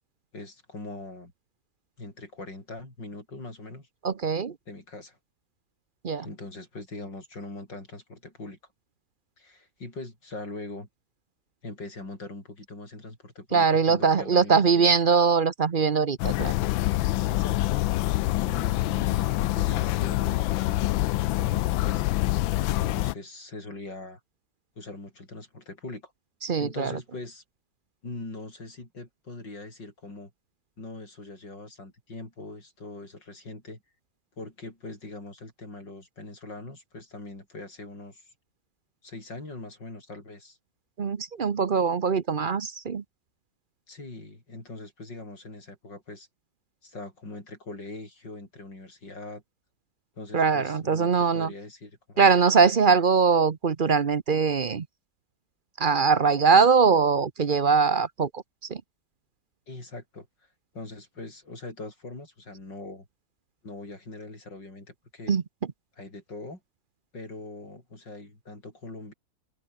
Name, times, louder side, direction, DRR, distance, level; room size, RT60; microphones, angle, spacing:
voice 1, 0.3-1.3 2.0-3.9 4.7-5.2 6.1-8.6 9.4-10.9 11.6-14.9 17.3-17.8 18.3-20.9 21.3-22.4 22.7-24.2 24.8-26.1 26.6-27.4 28.0-30.3 30.8-33.8 34.4-38.3 39.0-40.6 43.9-46.3 46.8-49.4 50.2-52.3 59.7-60.3 60.7-63.1 63.6-65.3 66.0-66.6 67.1-69.1, left 2 dB, 65° left, 8.0 m, -41 dB
voice 2, 4.0-4.5 6.0-6.2 13.5-16.5 26.4-26.9 41.0-43.0 50.3-51.5 52.2-54.9 55.8-58.4 58.7-58.8 65.3-65.4, right 5 dB, 45° right, 0.7 m, -22 dB
sound 1, 16.2-23.1, left 17 dB, 90° left, 1.4 m, -26 dB
open air
omnidirectional pair, 2.1 m